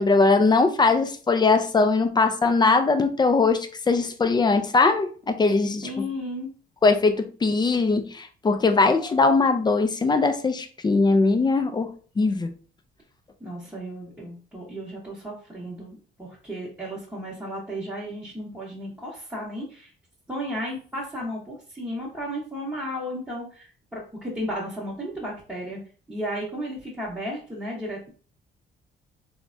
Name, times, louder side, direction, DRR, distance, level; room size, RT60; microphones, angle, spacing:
voice 1, 0.0-5.9 6.8-11.9 12.2-12.5, left 3 dB, 20° left, 7 dB, 0.4 m, -21 dB
voice 2, 5.8-6.5 13.4-19.9 20.3-25.8 26.1-28.1, equal, 10° right, -7 dB, 0.9 m, -34 dB
3.2 x 2.1 x 2.5 m, 0.40 s
cardioid pair, 90°, 20 cm